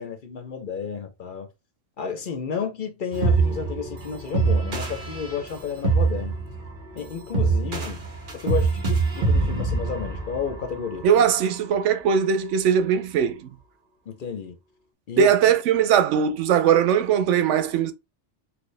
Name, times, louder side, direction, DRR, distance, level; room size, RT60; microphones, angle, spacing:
voice 1, 0.0-1.5 2.0-6.4 6.9-8.0 8.3-11.1 14.1-14.5 15.1-15.3, left 6 dB, 55° left, 0.7 m, -32 dB
sound 1, 3.1-11.3, right 4 dB, 50° right, 1.1 m, -25 dB
voice 2, 11.0-13.5 15.2-17.9, right 8 dB, 90° right, 0.9 m, -20 dB
4.3 x 2.2 x 3.2 m
omnidirectional pair, 1.2 m